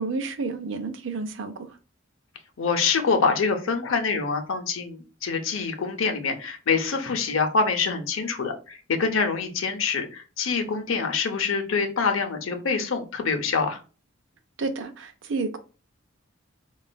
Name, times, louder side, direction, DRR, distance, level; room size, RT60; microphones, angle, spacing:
voice 1, 0.0-1.8 14.6-15.6, right 3 dB, 65° right, 9 dB, 0.5 m, -30 dB
voice 2, 2.6-13.8, left 5 dB, 85° left, 6 dB, 0.6 m, -25 dB
4.2 x 2.3 x 2.2 m, 0.34 s
head